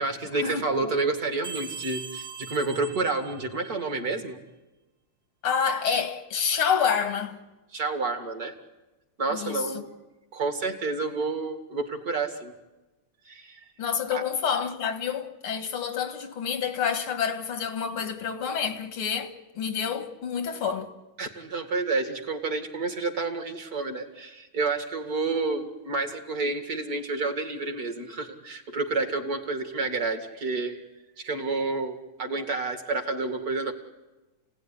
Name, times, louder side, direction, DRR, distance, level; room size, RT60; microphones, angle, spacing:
voice 1, 0.0-4.4 7.7-8.5 9.2-9.9 10.3-12.5 13.3-13.6 14.1-14.2 21.2-30.8 31.2-33.7, right 3 dB, 45° right, 2.6 m, -29 dB
sound 1, 1.4-4.0, right 5 dB, 25° right, 1.5 m, -40 dB
voice 2, 5.4-7.4 9.3-9.6 13.8-20.9, left 7 dB, 85° left, 2.5 m, -28 dB
29.5 x 17.5 x 10.0 m
omnidirectional pair, 2.3 m